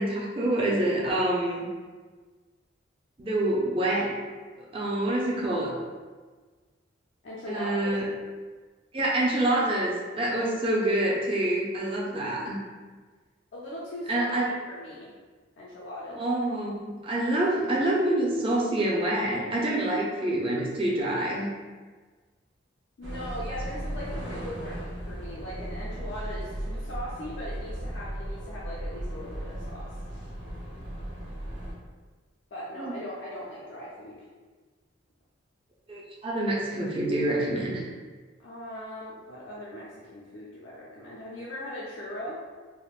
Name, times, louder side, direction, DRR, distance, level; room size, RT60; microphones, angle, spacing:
voice 1, 0.0-1.7 3.2-4.1 4.7-5.7 7.5-8.0 8.9-12.6 14.1-14.5 16.1-21.5 32.8-32.9 35.9-37.8, right 1 dB, 25° right, -4 dB, 0.5 m, -26 dB
voice 2, 7.2-8.0 13.5-15.1 15.6-16.2 23.0-29.9 32.5-34.3 38.4-42.4, equal, 65° left, -7 dB, 0.4 m, -39 dB
sound 1, 23.0-31.7, right 1 dB, 70° right, 0.7 m, -36 dB
3.5 x 2.1 x 2.4 m, 1.4 s
head